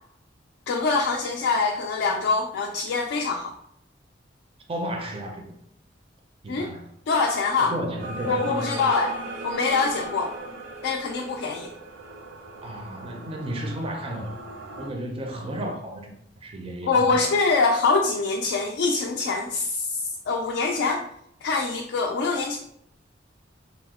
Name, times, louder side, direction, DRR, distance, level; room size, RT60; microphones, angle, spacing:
voice 1, 0.7-3.5 6.5-6.7 7.1-7.7 8.3-9.1 9.4-10.3 10.8-11.7 16.8-21.0 21.4-22.6, left 4 dB, 70° left, 0.3 m, -24 dB
voice 2, 4.7-5.6 6.4-6.9 7.6-8.9 12.6-14.4 14.8-16.1 16.4-17.4, right 1 dB, 30° right, 0.4 m, -33 dB
sound 1, 8.0-14.9, right 2 dB, 85° right, 0.5 m, -38 dB
2.8 x 2.0 x 3.5 m
head